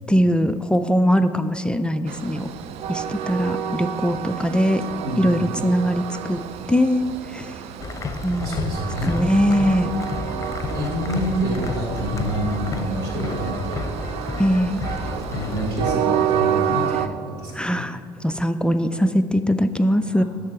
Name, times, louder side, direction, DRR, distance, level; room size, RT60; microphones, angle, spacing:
voice 1, 0.1-2.5 2.9-4.8 5.2-6.4 6.7-7.6 8.2-9.9 14.4-14.8 17.5-20.2, equal, 10° left, 9 dB, 0.3 m, -21 dB
Train, 2.1-17.1, right 9 dB, 60° right, 0.4 m, -29 dB
sound 1, 7.8-16.0, left 3 dB, 25° left, 0.7 m, -31 dB
voice 2, 8.4-9.1 10.3-13.8 14.8-17.8 20.1-20.2, equal, 80° right, -1 dB, 1.7 m, -28 dB
10.5 x 3.7 x 5.8 m, 2.3 s
hypercardioid pair, 60°, 12 cm